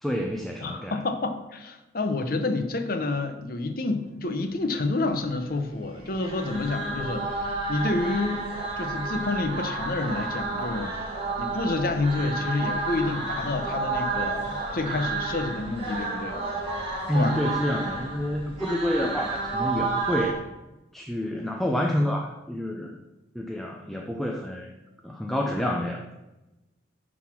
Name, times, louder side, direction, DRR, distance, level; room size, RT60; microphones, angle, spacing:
voice 1, 0.0-1.0 17.1-20.4 20.9-23.0 23.3-24.7 25.0-26.0, equal, ahead, 1 dB, 0.5 m, -28 dB
voice 2, 0.6-8.5 8.8-11.1 11.4-16.4 17.1-17.4 19.1-19.2, left 2 dB, 50° left, 7 dB, 0.8 m, -29 dB
sound 1, 6.0-20.3, right 3 dB, 30° right, 1.9 m, -31 dB
10.5 x 4.1 x 5.9 m, 1.0 s
head